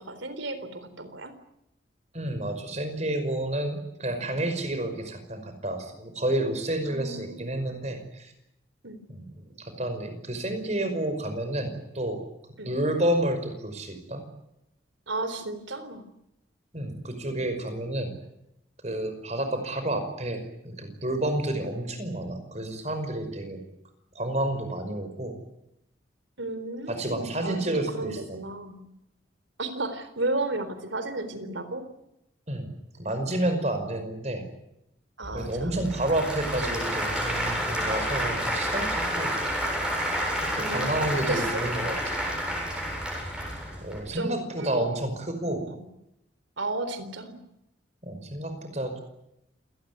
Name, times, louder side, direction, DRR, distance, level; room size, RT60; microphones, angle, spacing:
voice 1, 0.0-1.3 6.9-7.8 8.8-9.0 12.6-12.7 15.1-16.0 26.4-28.8 29.6-31.9 35.2-35.8 40.6-41.7 44.1-44.9 45.7-45.9 46.6-47.4, right 2 dB, 85° right, 11 dB, 3.9 m, -34 dB
voice 2, 2.1-8.3 9.1-9.3 9.6-12.2 12.7-14.2 16.7-18.1 18.8-23.6 24.2-25.4 26.9-28.4 32.5-32.7 33.0-34.4 35.3-39.4 40.4-42.1 43.8-45.7 48.0-49.0, right 1 dB, 35° right, 8 dB, 5.3 m, -30 dB
Applause / Crowd, 35.2-44.0, equal, 5° right, 7.5 m, -30 dB
28.0 x 18.5 x 9.5 m, 0.83 s
head